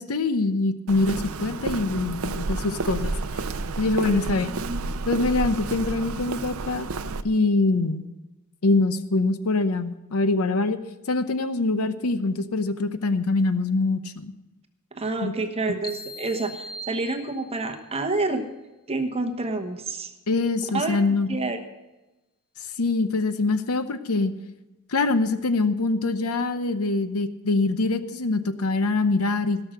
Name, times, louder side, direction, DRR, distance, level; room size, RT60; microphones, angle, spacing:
voice 1, 0.0-3.1 3.8-4.5 5.1-6.9 7.2-8.0 8.6-10.8 11.1-14.3 15.2-15.3 20.3-21.4 22.8-24.3 24.9-29.6, left 3 dB, 85° left, 11 dB, 0.8 m, -24 dB
Walk footsteps, 0.9-7.2, right 3 dB, 70° right, 0.6 m, -30 dB
voice 2, 4.0-4.8 15.0-18.4 18.9-20.1 20.7-21.6, right 3 dB, 30° right, 5 dB, 1.1 m, -29 dB
sound 1, 15.8-17.8, equal, 20° left, 0.9 m, -40 dB
17.0 x 6.4 x 6.4 m, 1.0 s
head